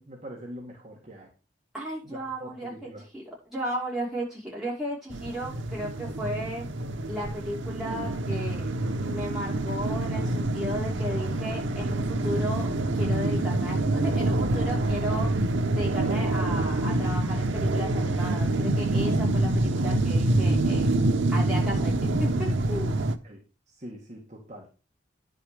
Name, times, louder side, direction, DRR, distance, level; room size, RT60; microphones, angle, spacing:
voice 1, 0.0-1.3 2.0-3.0 15.6-15.7 23.2-23.4 23.7-24.7, equal, 40° right, -1 dB, 1.9 m, -43 dB
voice 2, 1.7-2.7 3.1-3.2 3.5-6.6 7.1-8.6 9.0-15.3 15.8-20.8 21.3-23.0, equal, ahead, -7 dB, 5.2 m, -35 dB
sound 1, 5.1-23.2, right 2 dB, 85° right, 0.8 m, -26 dB
10.0 x 6.5 x 5.0 m, 0.32 s
head